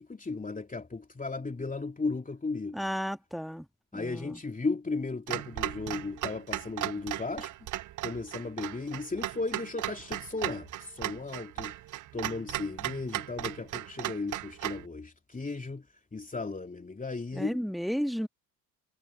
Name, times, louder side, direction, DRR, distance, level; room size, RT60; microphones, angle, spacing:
voice 1, 0.0-2.9 3.9-7.5 8.0-11.7 12.1-15.9 16.1-17.6, left 3 dB, 15° left, 3.0 m, -35 dB
voice 2, 2.7-3.7 3.9-4.4 17.3-18.3, equal, ahead, 1.8 m, -33 dB
Clock, 5.3-14.8, right 14 dB, 40° right, 0.8 m, -36 dB
hypercardioid pair, 60°, 49 cm